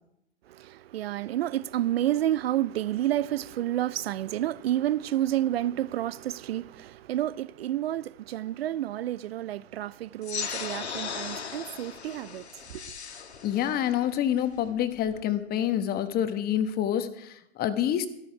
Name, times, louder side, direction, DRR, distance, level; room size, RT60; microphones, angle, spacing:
voice 1, 0.5-12.8, right 13 dB, 65° right, 0.5 m, -30 dB
sound 1, 10.2-15.2, left 6 dB, 75° left, 1.8 m, -38 dB
voice 2, 13.4-18.1, left 10 dB, 30° left, 1.2 m, -27 dB
13.5 x 13.0 x 4.7 m
figure-of-eight pair, 105°, 33 cm